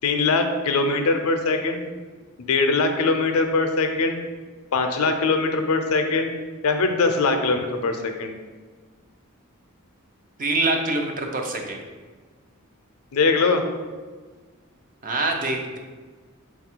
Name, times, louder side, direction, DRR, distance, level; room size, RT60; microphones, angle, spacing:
voice 1, 0.0-1.9 2.4-4.3 4.7-6.3 6.6-8.3 13.1-13.6, left 3 dB, 85° left, 6 dB, 0.5 m, -22 dB
voice 2, 10.4-11.8 15.0-15.8, right 2 dB, 40° right, 3 dB, 0.5 m, -25 dB
4.1 x 2.3 x 4.3 m, 1.4 s
head